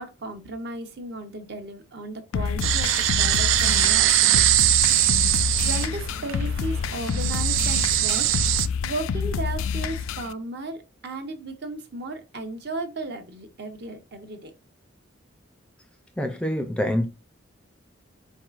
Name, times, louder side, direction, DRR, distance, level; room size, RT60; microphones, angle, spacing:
voice 1, 0.0-2.9 3.2-4.9 5.6-8.4 8.8-14.5, right 2 dB, 55° right, 0.9 m, -35 dB
sound 1, 2.3-10.3, left 6 dB, 90° left, 0.4 m, -28 dB
sound 2, 2.6-8.7, right 14 dB, 75° right, 0.3 m, -22 dB
voice 2, 16.2-17.0, equal, 5° left, 0.4 m, -25 dB
4.6 x 4.6 x 2.4 m
head